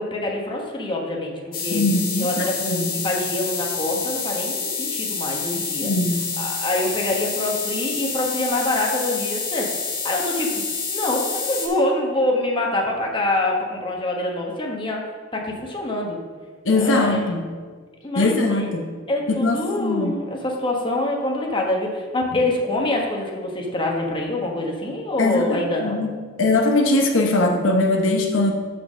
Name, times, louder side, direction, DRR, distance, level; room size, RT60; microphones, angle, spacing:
voice 1, 0.0-1.8 2.2-2.3 2.6-5.9 6.4-9.7 10.0-10.6 10.9-15.1 15.3-16.2 16.8-17.2 18.0-18.7 19.1-26.0, left 1 dB, 25° left, -1 dB, 1.3 m, -25 dB
sound 1, 1.5-11.7, left 5 dB, 50° left, 1.9 m, -28 dB
voice 2, 1.7-3.0 5.8-6.3 16.6-17.4 18.1-18.9 19.3-20.1 25.2-26.1 26.4-28.5, left 2 dB, 85° left, 2 dB, 1.0 m, -21 dB
6.7 x 5.6 x 6.2 m, 1.5 s
head